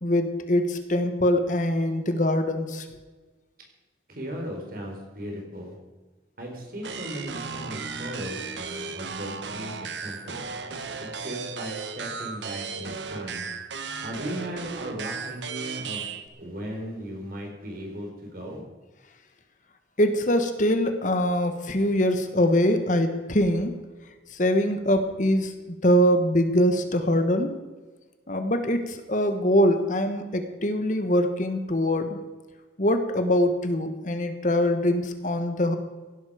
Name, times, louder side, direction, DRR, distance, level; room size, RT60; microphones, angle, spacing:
voice 1, 0.0-2.9 20.0-23.8 24.3-27.5 28.3-32.2 32.8-35.8, equal, 45° left, 8 dB, 1.4 m, -23 dB
voice 2, 4.1-5.7 6.4-10.4 11.0-13.5 14.0-16.1 16.4-18.6, equal, 55° right, 1 dB, 4.4 m, -37 dB
sound 1, 6.8-16.3, right 5 dB, 85° right, 1.3 m, -35 dB
16.5 x 11.5 x 5.0 m, 1.3 s
head